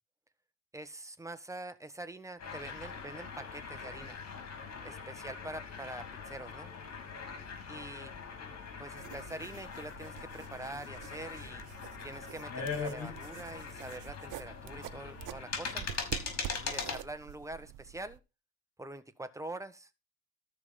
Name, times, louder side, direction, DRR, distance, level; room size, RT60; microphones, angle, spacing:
voice 1, 0.7-4.2 4.8-6.7 7.7-8.2 8.8-11.6 12.0-15.9 16.6-18.2 18.8-19.9, right 2 dB, 10° right, 1.5 m, -45 dB
sound 1, 2.4-17.0, left 5 dB, 55° left, 5.3 m, -41 dB
sound 2, 9.0-18.2, right 12 dB, 85° right, 0.9 m, -47 dB
13.0 x 6.0 x 5.8 m
cardioid pair, 90°, 30 cm